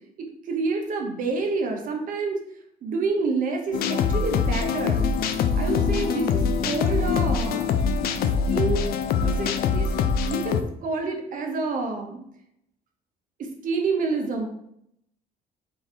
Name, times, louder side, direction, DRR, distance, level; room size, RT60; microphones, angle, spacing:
voice 1, 0.2-2.4 2.8-5.0 5.5-7.7 8.2-8.9 9.2-9.9 10.3-12.2 13.4-14.5, right 3 dB, 55° right, 2 dB, 0.9 m, -28 dB
sound 1, 3.7-10.6, left 6 dB, 65° left, 0.4 m, -24 dB
3.8 x 2.6 x 4.3 m, 0.76 s
cardioid pair, 110°, 17 cm